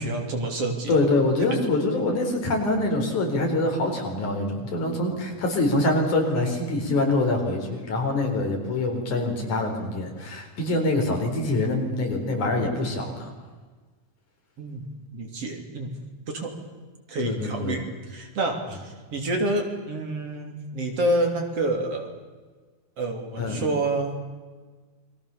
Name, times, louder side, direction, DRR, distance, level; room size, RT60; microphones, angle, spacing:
voice 1, 0.0-1.1 1.4-1.6 14.6-14.9 15.1-15.9 16.3-16.5 17.1-22.2 23.0-24.2, right 2 dB, 50° right, 3 dB, 4.1 m, -28 dB
voice 2, 0.9-13.3 17.2-17.8 23.4-23.6, left 2 dB, 75° left, 2 dB, 5.7 m, -25 dB
29.0 x 22.5 x 7.0 m, 1.4 s
omnidirectional pair, 3.5 m